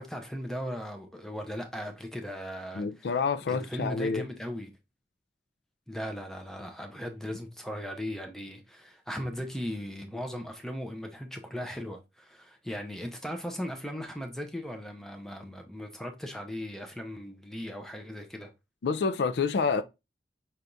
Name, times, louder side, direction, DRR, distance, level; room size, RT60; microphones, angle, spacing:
voice 1, 0.0-3.1 3.5-4.7 5.9-18.5, equal, 5° left, 0.7 m, -38 dB
voice 2, 2.7-4.3 18.8-19.8, left 5 dB, 75° left, 0.4 m, -28 dB
5.7 x 3.4 x 2.6 m
head